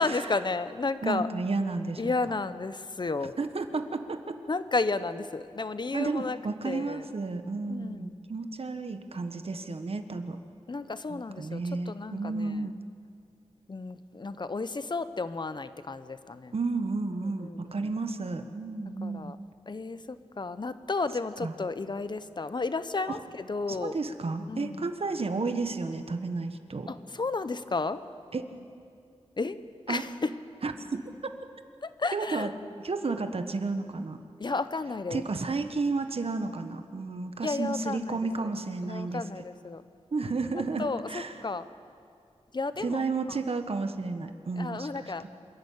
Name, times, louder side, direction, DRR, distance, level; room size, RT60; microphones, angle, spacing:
voice 1, 0.0-1.3 2.0-3.3 4.5-6.4 6.6-7.1 7.7-8.0 10.7-12.7 13.7-16.5 17.4-17.7 19.0-19.4 19.7-24.0 24.5-24.9 26.9-28.0 29.4-29.6 29.9-30.3 31.8-32.5 34.4-35.2 37.4-38.5 38.8-39.8 40.8-41.7 42.5-43.0 44.6-45.3, left 3 dB, 40° left, 12 dB, 0.9 m, -32 dB
voice 2, 1.0-2.1 3.4-4.4 5.9-10.4 11.1-12.7 16.5-19.3 21.4-21.5 23.1-23.2 23.7-26.9 28.3-28.4 29.9-30.0 30.6-31.0 32.1-32.5 32.8-34.2 35.1-39.2 40.1-41.4 42.8-45.3, right 3 dB, 55° right, 8 dB, 1.4 m, -32 dB
27.5 x 11.0 x 8.7 m, 2.4 s
wide cardioid pair, 80°, 12 cm